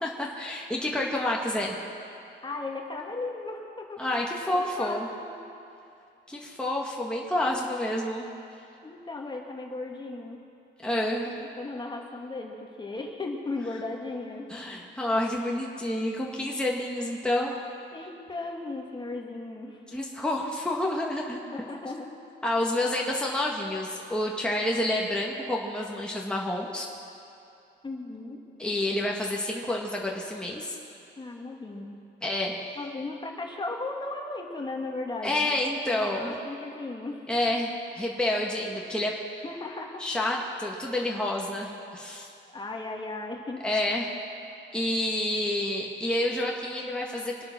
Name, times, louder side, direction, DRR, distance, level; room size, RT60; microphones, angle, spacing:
voice 1, 0.0-1.8 4.0-5.1 6.3-8.3 10.8-11.3 14.5-17.6 19.9-21.4 22.4-26.9 28.6-30.8 32.2-32.6 35.2-36.3 37.3-39.1 40.0-42.3 43.6-44.1 44.7-47.4, left 1 dB, 5° left, -2 dB, 1.9 m, -29 dB
voice 2, 2.4-4.0 4.5-5.0 5.3-5.4 8.8-10.4 11.0-11.1 11.6-14.5 17.9-19.8 21.5-22.2 27.8-28.4 31.2-32.0 32.8-35.5 35.9-37.2 39.4-40.1 42.5-43.6, left 2 dB, 25° left, 1 dB, 2.2 m, -36 dB
25.5 x 8.6 x 6.2 m, 2.7 s
cardioid pair, 90°, 20 cm